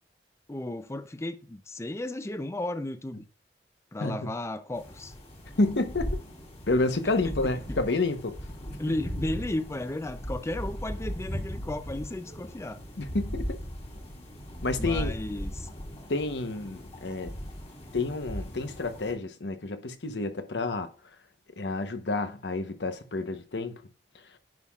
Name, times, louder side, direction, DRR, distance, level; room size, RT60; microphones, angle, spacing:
voice 1, 0.5-3.3 3.9-5.1 7.2-7.4 7.7-7.8 8.8-12.8 14.8-15.7, left 1 dB, 15° left, 0.5 m, -34 dB
voice 2, 4.0-4.3 5.6-6.2 6.7-8.4 8.6-8.8 13.0-13.6 14.6-15.1 16.1-17.3 17.9-20.9 21.6-23.8, left 2 dB, 75° left, 1.0 m, -29 dB
sound 1, 4.7-19.1, equal, 40° left, 2.2 m, -38 dB
10.5 x 5.6 x 2.4 m
head